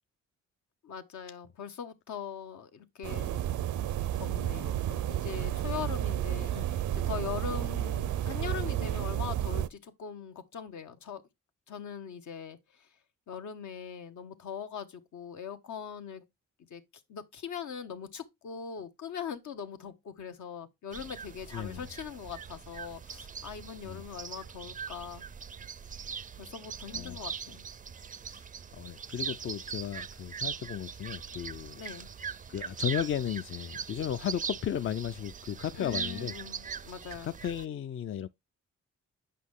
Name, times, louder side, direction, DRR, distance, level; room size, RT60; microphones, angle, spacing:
voice 1, 0.8-3.4 4.1-11.2 11.7-12.9 13.3-16.2 16.7-16.8 17.1-25.2 26.4-27.7 31.7-32.1 35.8-37.3, left 7 dB, 75° left, 1.1 m, -41 dB
sound 1, 3.0-9.7, right 12 dB, 80° right, 0.5 m, -31 dB
sound 2, 20.9-37.7, right 6 dB, 30° right, 0.4 m, -41 dB
voice 2, 21.5-21.8 23.8-24.0 26.9-27.2 28.2-28.5 28.7-31.8 32.5-36.3 37.2-38.3, left 9 dB, 45° left, 0.4 m, -35 dB
8.3 x 5.4 x 3.7 m
cardioid pair, 95°, 29 cm